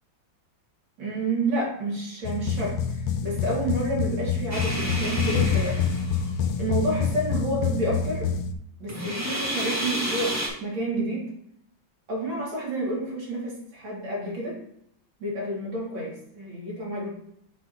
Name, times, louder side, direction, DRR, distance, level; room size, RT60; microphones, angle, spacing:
voice 1, 1.0-2.8 3.2-5.8 6.6-8.3 8.8-11.2 12.1-14.6 15.2-17.1, right 1 dB, 90° right, -3 dB, 2.8 m, -29 dB
sound 1, 2.2-8.5, left 6 dB, 75° left, 1.2 m, -27 dB
sound 2, 4.5-6.5 8.9-10.5, right 1 dB, 10° right, 1.0 m, -30 dB
7.2 x 2.8 x 5.4 m, 0.73 s
omnidirectional pair, 2.1 m